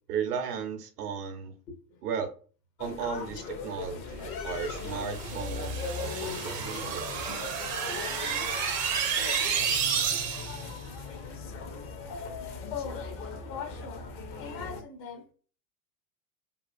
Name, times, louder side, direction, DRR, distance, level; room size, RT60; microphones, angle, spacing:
voice 1, 0.1-1.5 2.0-2.3 2.8-7.1, right 6 dB, 70° right, 0.8 m, -35 dB
voice 2, 1.7-2.0 12.7-13.1 13.4-14.1 14.4-15.2, left 7 dB, 75° left, 0.9 m, -39 dB
sound 1, 2.8-14.8, left 4 dB, 30° left, 0.4 m, -39 dB
sound 2, 4.7-10.7, right 7 dB, 35° right, 0.5 m, -31 dB
2.7 x 2.4 x 2.5 m
hypercardioid pair, 95°, 49 cm